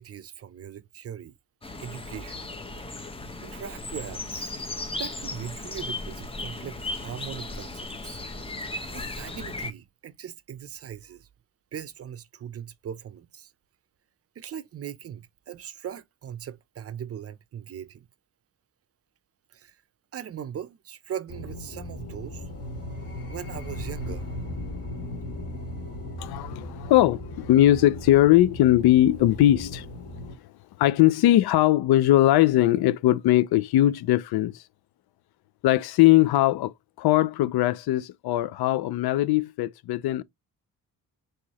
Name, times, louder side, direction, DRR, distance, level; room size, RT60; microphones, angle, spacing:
voice 1, 0.0-1.3 1.8-2.5 3.4-4.5 4.9-8.2 8.9-11.3 11.7-13.5 14.4-18.1 19.5-19.8 20.1-22.4 23.3-24.2, right 9 dB, 40° right, 0.5 m, -39 dB
sound 1, 1.6-9.7, left 2 dB, 15° left, 0.7 m, -36 dB
sound 2, 21.3-30.3, left 1 dB, 40° left, 1.8 m, -37 dB
voice 2, 26.2-29.9 30.8-34.5 35.6-40.2, left 14 dB, 75° left, 0.5 m, -20 dB
4.6 x 3.1 x 2.9 m
cardioid pair, 105°, 39 cm